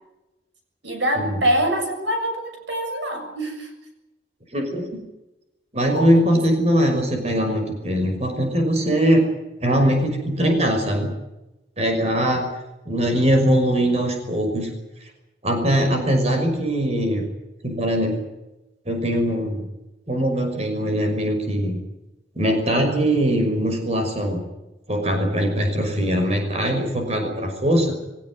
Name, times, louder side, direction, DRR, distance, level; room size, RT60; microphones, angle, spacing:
voice 1, 0.8-3.7 5.9-6.1, right 1 dB, 85° right, 4 dB, 7.1 m, -24 dB
voice 2, 4.5-4.9 5.7-9.3 9.6-11.1 11.8-12.5 12.9-14.7 15.4-17.2 17.6-18.2 18.9-19.7 20.1-21.8 22.4-24.4 24.9-27.9, equal, 35° right, 4 dB, 5.8 m, -21 dB
23.5 x 17.5 x 9.8 m, 0.97 s
head